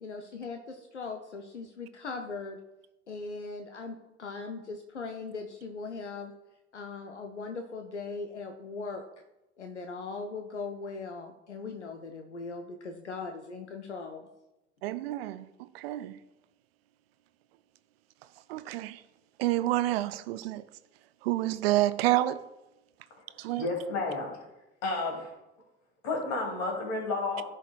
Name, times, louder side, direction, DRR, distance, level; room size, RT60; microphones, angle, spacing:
voice 1, 0.0-2.6 3.1-6.3 6.7-9.1 9.6-14.3, left 4 dB, 85° left, 0.6 m, -39 dB
voice 2, 14.8-15.5 15.7-16.2 18.5-19.0 19.4-20.6 21.2-22.4 23.4-23.6, right 15 dB, 65° right, 0.5 m, -28 dB
voice 3, 23.6-24.3 24.8-25.3 26.0-27.4, left 3 dB, 55° left, 2.5 m, -31 dB
14.5 x 4.9 x 2.3 m
figure-of-eight pair, 60°, 34 cm